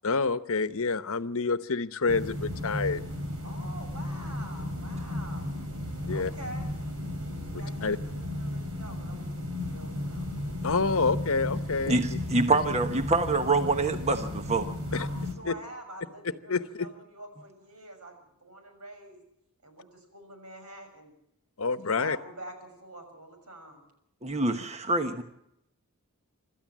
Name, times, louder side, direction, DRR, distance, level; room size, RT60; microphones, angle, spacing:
voice 1, 0.0-3.0 6.0-6.3 7.5-8.0 10.6-12.2 14.9-15.0 15.5-15.6 16.5-16.9 21.6-22.2, left 4 dB, 65° left, 13 dB, 1.0 m, -28 dB
sound 1, 2.1-15.3, left 1 dB, 70° right, 3.8 m, -34 dB
voice 2, 3.4-5.6 6.1-6.8 7.5-10.3 14.9-19.2 19.6-21.1 21.6-23.8, right 1 dB, 85° right, 5 dB, 6.7 m, -46 dB
voice 3, 11.9-14.7 24.2-25.2, right 3 dB, 30° right, 7 dB, 1.2 m, -26 dB
26.5 x 13.5 x 7.4 m, 0.77 s
head